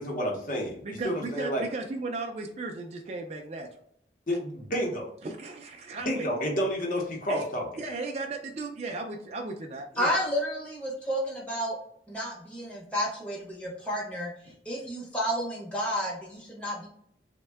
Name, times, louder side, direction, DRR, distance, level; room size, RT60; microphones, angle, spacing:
voice 1, 0.0-1.6 4.3-5.1 6.1-7.7, equal, 50° left, 0 dB, 0.8 m, -30 dB
voice 2, 0.8-3.7 5.2-6.3 7.3-7.5 7.8-10.2 14.5-14.6, right 3 dB, 35° right, 2 dB, 0.3 m, -36 dB
voice 3, 10.0-11.8 12.1-16.9, equal, 5° left, -5 dB, 0.7 m, -31 dB
3.4 x 2.2 x 3.3 m, 0.71 s
head